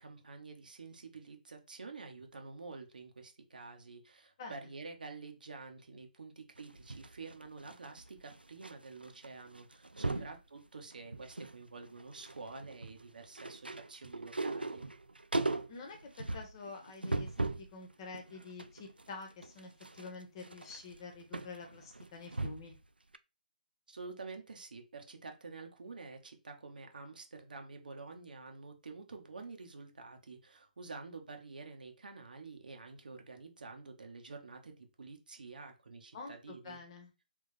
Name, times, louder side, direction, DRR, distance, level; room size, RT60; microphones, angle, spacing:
voice 1, 0.0-14.9 23.9-36.8, right 4 dB, 65° right, 1.2 m, -49 dB
voice 2, 4.4-4.7 10.1-10.3 15.5-22.8 36.1-37.1, left 4 dB, 35° left, 1.2 m, -48 dB
sound 1, 6.6-8.7 9.0-9.3 9.5-10.4 10.9-11.6 11.9-17.7 18.1-22.8 23.1-23.2, right 2 dB, 85° right, 0.5 m, -39 dB
3.7 x 3.6 x 3.3 m
figure-of-eight pair, 140°, 5 cm